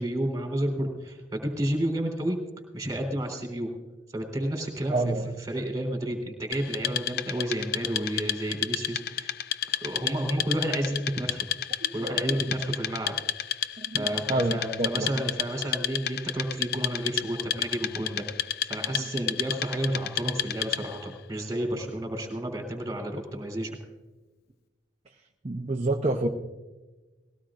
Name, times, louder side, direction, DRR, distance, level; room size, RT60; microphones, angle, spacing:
voice 1, 0.0-2.4 2.7-3.7 4.1-9.3 9.7-11.5 11.9-13.1 13.9-23.7, right 1 dB, 20° right, 2 dB, 3.4 m, -31 dB
voice 2, 4.9-5.2 11.8-12.4 13.8-15.1 25.4-26.3, right 2 dB, 35° right, 2 dB, 0.7 m, -28 dB
Wood, 6.5-21.1, left 11 dB, 55° left, 0.5 m, -32 dB
20.0 x 17.0 x 2.5 m, 1.2 s
head